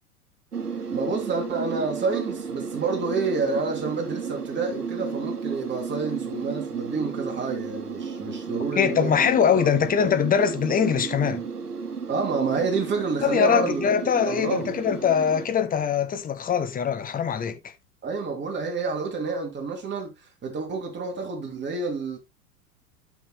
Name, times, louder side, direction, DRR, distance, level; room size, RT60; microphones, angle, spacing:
sound 1, 0.5-15.5, right 5 dB, 80° right, 1.3 m, -33 dB
voice 1, 0.9-9.8 12.1-13.9 14.2-14.7 18.0-20.1 20.4-22.2, right 4 dB, 25° right, 2.9 m, -29 dB
voice 2, 8.8-11.4 13.2-17.7, left 7 dB, 20° left, 1.1 m, -22 dB
12.5 x 6.3 x 2.2 m
figure-of-eight pair, 85°, 45 cm